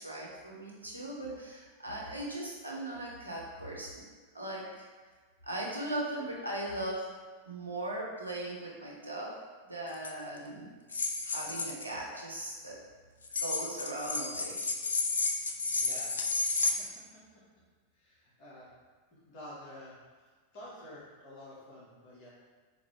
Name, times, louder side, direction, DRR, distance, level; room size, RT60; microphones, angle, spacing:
voice 1, 0.0-4.0 4.3-4.9 5.4-7.1 7.4-9.3 9.7-12.7 13.4-14.6, right 1 dB, 85° right, -3 dB, 0.7 m, -39 dB
sound 1, 9.9-10.1 10.9-11.8 13.2-16.7, left 3 dB, 70° left, 0.3 m, -32 dB
voice 2, 15.7-16.2 16.8-16.9 17.9-18.7 19.1-22.3, left 1 dB, 45° left, -8 dB, 1.0 m, -50 dB
3.9 x 2.6 x 3.0 m, 1.4 s
figure-of-eight pair, 90°, 0 cm